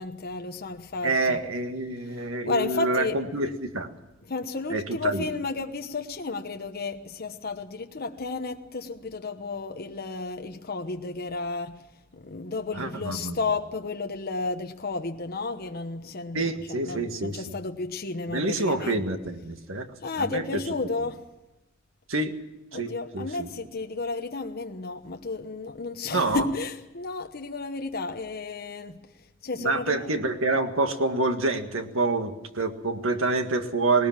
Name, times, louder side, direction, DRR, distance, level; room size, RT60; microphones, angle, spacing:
voice 1, 0.0-1.4 2.4-3.2 4.3-11.8 12.1-19.0 20.0-21.2 22.7-29.0 29.4-30.1, left 3 dB, 50° left, 1.1 m, -32 dB
voice 2, 1.0-3.9 4.7-5.3 12.7-13.4 16.3-17.6 18.3-19.9 20.2-20.8 22.1-22.3 22.7-23.5 26.1-26.5 29.6-34.1, right 2 dB, 75° right, 1.8 m, -27 dB
19.0 x 19.0 x 7.4 m
head